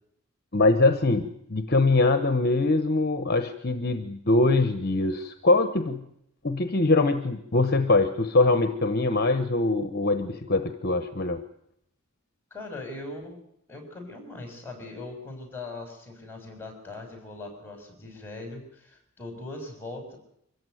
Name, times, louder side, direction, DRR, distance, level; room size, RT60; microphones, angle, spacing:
voice 1, 0.5-6.0 6.4-11.4, left 2 dB, 45° left, 9 dB, 1.1 m, -23 dB
voice 2, 12.5-13.4 13.7-20.2, left 2 dB, 10° left, 3 dB, 6.4 m, -40 dB
25.0 x 15.0 x 9.3 m, 0.76 s
head